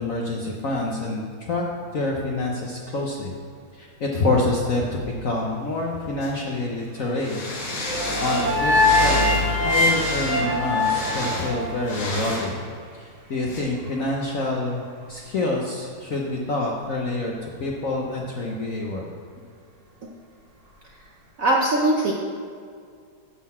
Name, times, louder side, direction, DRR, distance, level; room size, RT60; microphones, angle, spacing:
voice 1, 0.0-1.6 1.9-3.3 3.7-7.4 8.2-12.6 12.9-19.1, left 2 dB, 60° left, -1 dB, 0.9 m, -27 dB
Engine, 2.7-21.5, left 2 dB, 35° right, 1.0 m, -36 dB
sound 1, 6.2-6.3 7.2-12.5 13.5-13.6, left 2 dB, 85° left, 2.6 m, -31 dB
sound 2, 7.8-12.0, left 2 dB, 15° right, 0.4 m, -22 dB
voice 2, 21.4-22.1, right 2 dB, 60° right, -1 dB, 0.9 m, -20 dB
9.9 x 3.9 x 7.4 m, 2.2 s
omnidirectional pair, 2.3 m